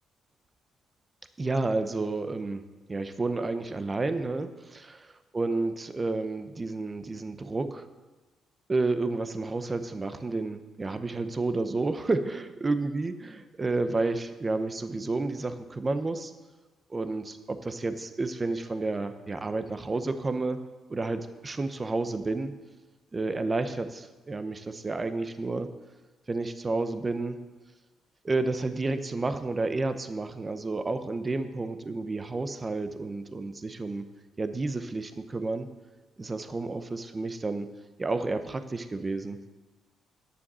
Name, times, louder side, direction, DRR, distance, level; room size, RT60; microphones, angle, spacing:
voice 1, 1.4-7.9 8.7-13.1 13.6-16.3 16.9-20.6 20.9-22.5 23.1-25.7 26.3-27.4 28.2-34.0 34.4-35.7 36.2-37.7 38.0-39.4, right 3 dB, 25° right, 10 dB, 0.8 m, -30 dB
9.9 x 7.1 x 6.2 m, 1.2 s
cardioid pair, 90°, 0 cm